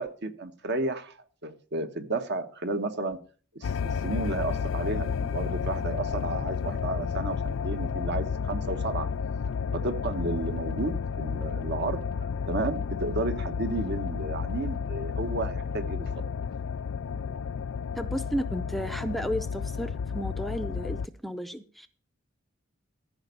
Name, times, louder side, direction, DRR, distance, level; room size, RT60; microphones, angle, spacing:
voice 1, 0.0-3.2 3.5-9.1 9.7-12.0 12.5-16.1, right 2 dB, 60° right, 9 dB, 1.2 m, -32 dB
sound 1, 3.6-21.1, left 6 dB, 80° left, 0.4 m, -31 dB
voice 2, 17.9-21.9, equal, ahead, 10 dB, 0.5 m, -33 dB
14.0 x 5.2 x 6.8 m, 0.41 s
head